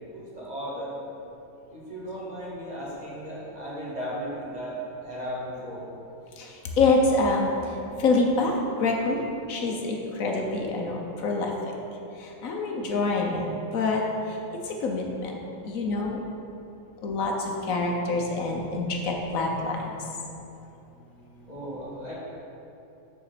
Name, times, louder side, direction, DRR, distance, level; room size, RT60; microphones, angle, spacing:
voice 1, 0.1-0.9 1.7-4.8 5.0-5.8 21.5-22.1, equal, 30° right, -8 dB, 2.1 m, -36 dB
voice 2, 6.8-7.5 8.0-8.5 8.8-9.2 9.5-11.5 12.4-13.5 13.7-14.0 14.8-15.3 15.6-16.2 17.0-20.0, left 3 dB, 75° left, 1 dB, 1.3 m, -25 dB
6.9 x 5.0 x 6.6 m, 2.9 s
omnidirectional pair, 1.4 m